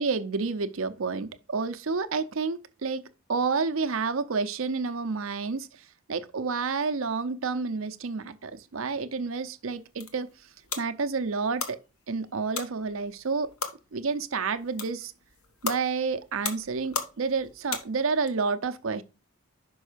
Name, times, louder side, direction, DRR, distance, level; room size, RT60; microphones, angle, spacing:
voice 1, 0.0-3.0 3.3-5.7 6.1-10.3 10.8-11.8 12.1-13.5 13.9-15.1 15.6-19.0, right 4 dB, 65° right, 0.6 m, -29 dB
sound 1, 9.7-18.3, left 5 dB, 80° left, 1.1 m, -38 dB
5.5 x 5.4 x 5.0 m
head